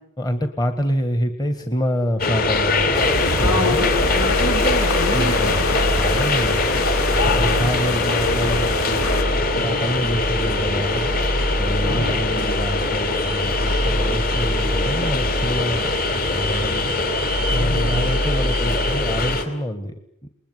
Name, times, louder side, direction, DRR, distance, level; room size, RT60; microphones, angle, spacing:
voice 1, 0.2-3.9 5.1-5.6 6.0-6.6 7.1-11.1 11.6-16.9 17.5-19.9, equal, 20° left, 7 dB, 1.6 m, -26 dB
sound 1, 2.2-19.4, left 2 dB, 45° left, 4.3 m, -21 dB
sound 2, 2.9-9.2, left 3 dB, 70° left, 3.0 m, -27 dB
voice 2, 3.3-5.6 7.4-7.7 11.8-12.2 17.5-18.1, left 1 dB, 85° left, 1 dB, 5.8 m, -27 dB
29.0 x 20.5 x 9.5 m, 0.80 s
head